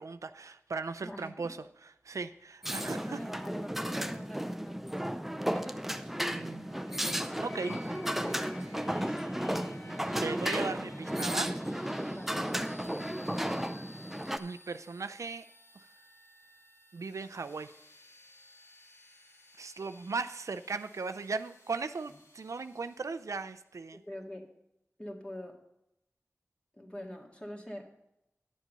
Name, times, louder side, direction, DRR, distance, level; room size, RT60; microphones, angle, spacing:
voice 1, 0.0-1.6 2.0-3.2 6.3-6.8 7.4-7.8 9.7-11.5 14.4-15.4 15.8-15.9 16.9-17.7 19.6-24.0, right 4 dB, 80° right, 11 dB, 0.4 m, -38 dB
voice 2, 1.0-1.5 3.1-5.8 12.1-12.3 23.9-24.5 25.0-25.6 26.7-27.9, equal, 20° left, 1 dB, 2.0 m, -44 dB
sound 1, 2.6-14.4, equal, 5° right, 0.5 m, -34 dB
sound 2, 6.7-23.4, left 2 dB, 75° left, 2.0 m, -55 dB
10.0 x 7.3 x 5.3 m, 0.83 s
wide cardioid pair, 55°, 5 cm